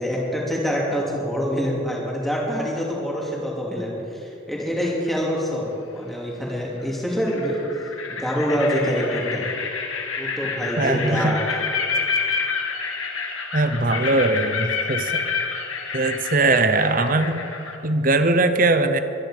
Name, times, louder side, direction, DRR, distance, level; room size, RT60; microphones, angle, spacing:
voice 1, 0.0-7.6 8.1-9.4 10.2-11.4, equal, ahead, -4 dB, 2.6 m, -25 dB
sound 1, 4.8-5.3 6.8-6.9 7.3-17.8, left 5 dB, 85° left, 1.8 m, -28 dB
voice 2, 10.8-11.4 13.5-15.2 15.9-17.4 17.8-19.0, right 2 dB, 40° right, 9 dB, 0.8 m, -20 dB
23.5 x 10.0 x 5.1 m, 2.7 s
head